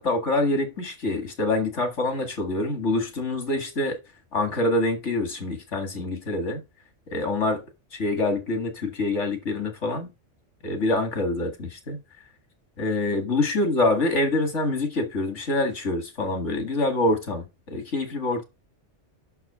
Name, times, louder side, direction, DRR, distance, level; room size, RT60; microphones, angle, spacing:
voice 1, 0.0-4.0 4.3-6.6 7.1-7.6 7.9-10.1 10.6-12.0 12.8-18.4, left 2 dB, 80° left, 2.4 m, -25 dB
6.3 x 6.0 x 4.9 m
omnidirectional pair, 1.2 m